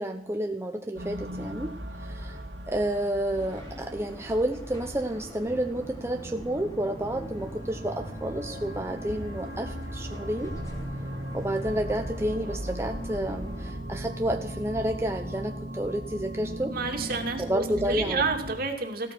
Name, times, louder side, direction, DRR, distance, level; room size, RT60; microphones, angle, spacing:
voice 1, 0.0-1.7 2.0-2.4 2.7-10.5 11.3-16.7 17.4-18.2, right 1 dB, 15° right, 3 dB, 0.9 m, -30 dB
sound 1, 1.0-18.6, equal, 75° right, 2.3 m, -38 dB
sound 2, 3.3-13.7, equal, 20° left, 5.3 m, -43 dB
voice 2, 16.6-19.1, right 4 dB, 55° right, 3 dB, 2.6 m, -30 dB
16.0 x 13.5 x 6.2 m, 0.71 s
head